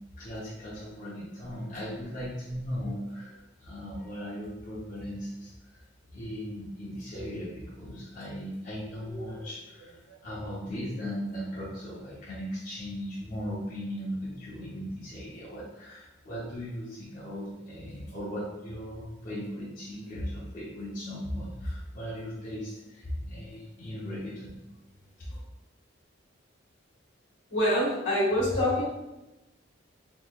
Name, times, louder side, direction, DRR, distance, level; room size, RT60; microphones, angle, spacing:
voice 1, 0.2-5.8 6.1-24.6 25.2-25.4, equal, 45° left, -8 dB, 0.8 m, -37 dB
voice 2, 27.5-28.8, left 1 dB, 80° left, -6 dB, 1.4 m, -25 dB
3.9 x 2.9 x 2.3 m, 0.98 s
head